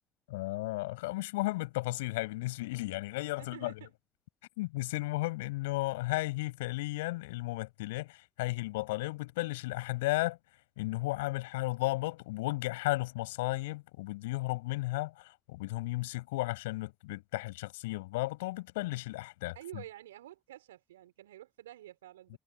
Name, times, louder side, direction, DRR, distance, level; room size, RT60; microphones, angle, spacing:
voice 1, 0.3-3.7 4.6-10.4 10.8-19.8 22.3-22.4, left 20 dB, 75° left, 7.1 m, -34 dB
voice 2, 3.4-3.9 19.6-22.4, right 14 dB, 80° right, 5.2 m, -49 dB
figure-of-eight pair, 50°, 0 cm